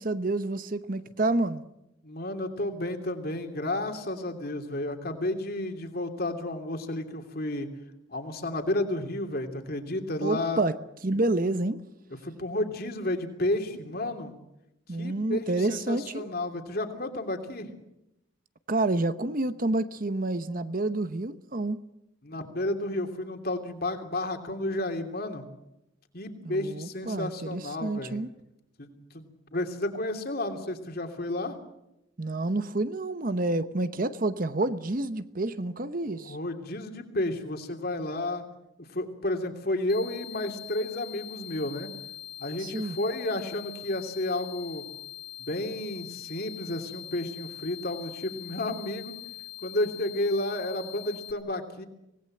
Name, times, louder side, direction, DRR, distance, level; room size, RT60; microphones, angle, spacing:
voice 1, 0.0-1.6 10.2-10.7 11.0-11.8 14.9-16.3 18.7-21.8 26.4-28.3 32.2-36.4 42.6-43.0, right 2 dB, 45° right, 12 dB, 0.9 m, -29 dB
voice 2, 2.0-7.7 8.1-10.6 12.2-14.3 15.0-17.7 22.2-25.4 26.1-28.2 28.8-31.6 36.1-38.4 38.8-41.9 42.4-44.8 45.4-49.1 49.6-51.8, left 1 dB, 50° left, 5 dB, 2.9 m, -32 dB
sound 1, 39.9-51.3, left 12 dB, 20° left, 1.4 m, -43 dB
25.5 x 18.5 x 7.9 m, 0.86 s
head